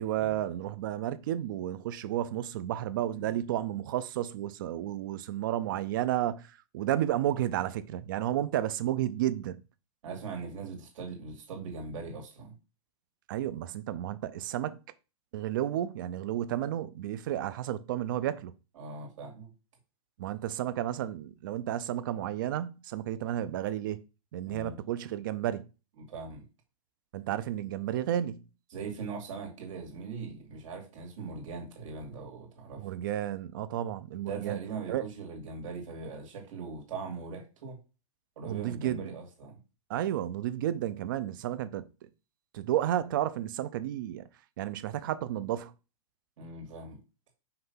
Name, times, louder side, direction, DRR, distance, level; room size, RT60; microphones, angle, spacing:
voice 1, 0.0-9.6 13.3-14.8 15.3-18.5 20.2-24.0 24.3-25.7 27.1-28.5 32.8-34.6 34.9-35.0 38.5-39.1 39.9-41.9 42.5-44.3 44.6-45.7, right 12 dB, 35° right, 0.5 m, -32 dB
voice 2, 10.0-12.5 18.8-19.5 24.5-24.8 26.0-26.4 28.7-32.9 34.3-37.8 38.4-39.6 46.4-47.0, right 4 dB, 60° right, 2.6 m, -40 dB
5.8 x 3.2 x 5.5 m
supercardioid pair, 175°, 18 cm